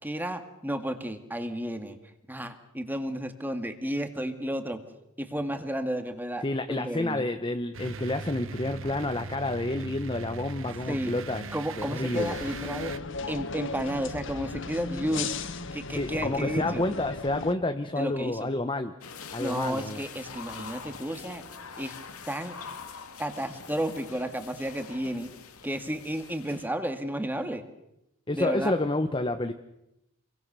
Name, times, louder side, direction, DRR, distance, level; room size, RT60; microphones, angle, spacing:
voice 1, 0.0-2.0 2.3-4.8 5.2-6.4 6.7-7.2 10.9-11.1 11.5-12.9 13.3-15.4 15.7-16.8 18.0-18.5 19.4-21.4 21.8-21.9 22.3-22.6 23.2-25.3 25.6-27.6 28.3-28.7, equal, 10° right, 7 dB, 2.0 m, -32 dB
voice 2, 6.4-11.4 11.8-12.4 15.9-18.9 19.3-20.0 28.3-29.5, left 2 dB, 25° left, 7 dB, 1.0 m, -29 dB
sound 1, 7.7-13.0, right 4 dB, 65° right, 1.0 m, -40 dB
sound 2, 12.1-17.5, left 4 dB, 60° left, 1.3 m, -36 dB
sound 3, 19.0-26.7, left 5 dB, 85° left, 2.3 m, -44 dB
28.0 x 22.5 x 6.8 m, 0.86 s
head